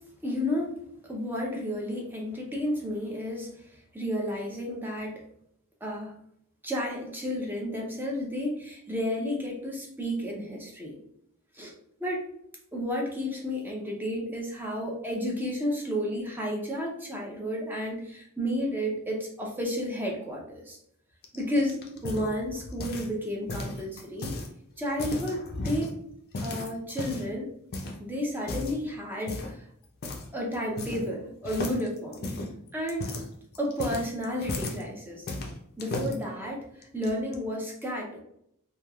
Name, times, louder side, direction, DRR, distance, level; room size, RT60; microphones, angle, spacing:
voice 1, 0.2-5.2 5.8-6.1 6.6-11.0 11.5-11.7 12.0-12.2 12.7-20.8 21.3-24.3 24.8-25.9 26.4-27.5 28.0-29.6 30.3-32.3 32.7-33.1 33.6-35.3 35.8-38.2, equal, 10° right, -2 dB, 0.5 m, -32 dB
sound 1, 21.2-23.2 23.5-24.5 24.9-25.9 26.3-27.3 27.7-28.0 28.4-28.8 29.3-29.6 30.0-30.3 30.5-31.2 31.4-34.8 35.3-36.1 36.8-37.4, left 2 dB, 45° left, 0.5 m, -35 dB
3.0 x 2.3 x 2.2 m, 0.72 s
head